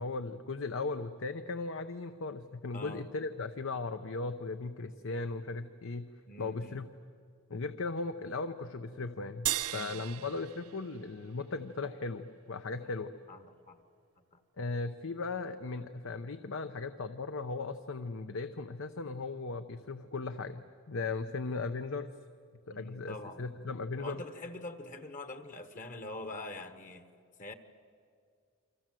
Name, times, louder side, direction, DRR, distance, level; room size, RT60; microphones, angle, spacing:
voice 1, 0.0-6.1 6.4-6.9 7.5-13.1 14.6-22.1 22.7-24.2, left 3 dB, 65° left, 10 dB, 0.8 m, -37 dB
voice 2, 2.7-3.1 6.3-6.8 9.7-10.3 13.3-13.8 14.3-14.4 22.7-23.5 24.0-27.1 27.4-27.5, left 2 dB, 40° left, 9 dB, 1.3 m, -44 dB
sound 1, 9.5-12.0, right 14 dB, 85° right, 0.7 m, -37 dB
29.0 x 25.0 x 7.7 m, 2.3 s
head